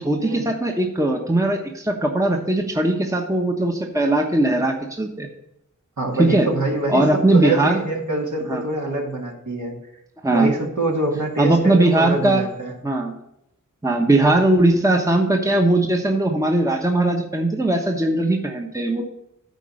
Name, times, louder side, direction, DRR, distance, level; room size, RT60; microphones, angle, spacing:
voice 1, 0.0-5.3 6.2-6.5 6.9-7.8 8.5-8.6 10.2-10.5 11.4-12.4 12.8-13.1 13.8-19.0, right 2 dB, 10° right, 2 dB, 1.0 m, -19 dB
voice 2, 6.0-7.0 7.3-9.7 10.3-12.7, right 2 dB, 60° right, -1 dB, 2.2 m, -25 dB
9.2 x 4.6 x 6.5 m, 0.79 s
wide cardioid pair, 50°, 32 cm